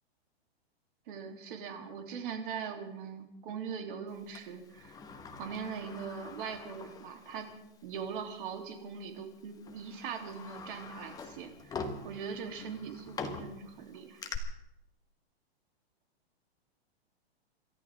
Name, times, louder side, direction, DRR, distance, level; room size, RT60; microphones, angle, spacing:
voice 1, 1.1-5.0 5.4-7.5 7.8-14.2, right 6 dB, 55° right, 3 dB, 3.4 m, -41 dB
Sliding door, 4.4-7.6 7.9-8.0 9.0-9.2 9.6-14.4, left 4 dB, 10° left, 1.2 m, -44 dB
27.5 x 13.5 x 3.7 m, 0.85 s
hypercardioid pair, 150°, 32 cm